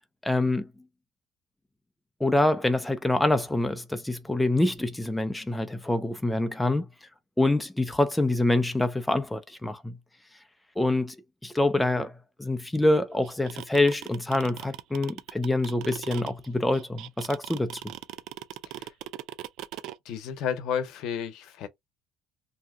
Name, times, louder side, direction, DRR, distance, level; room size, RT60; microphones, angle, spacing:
voice 1, 0.2-0.7 2.2-6.9 7.4-10.0 10.8-11.2 11.4-12.1 12.4-17.9, left 2 dB, 5° left, 0.4 m, -25 dB
sound 1, 13.2-20.0, right 14 dB, 70° right, 0.4 m, -39 dB
voice 2, 20.0-21.7, left 8 dB, 70° left, 0.7 m, -32 dB
2.7 x 2.2 x 3.6 m
cardioid pair, 150°, 0 cm